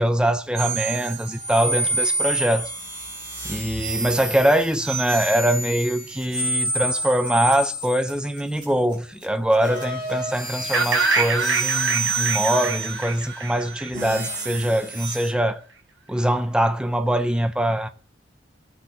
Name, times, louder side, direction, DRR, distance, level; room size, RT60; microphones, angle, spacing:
voice 1, 0.0-2.7 3.4-15.6 16.1-17.9, right 1 dB, 5° right, 0.6 m, -23 dB
sound 1, 0.6-8.9 9.6-15.3, right 2 dB, 45° right, 4.7 m, -29 dB
sound 2, 4.6-11.7, right 1 dB, 25° right, 6.4 m, -48 dB
sound 3, 10.7-14.6, right 4 dB, 70° right, 1.4 m, -25 dB
18.0 x 7.8 x 4.3 m
head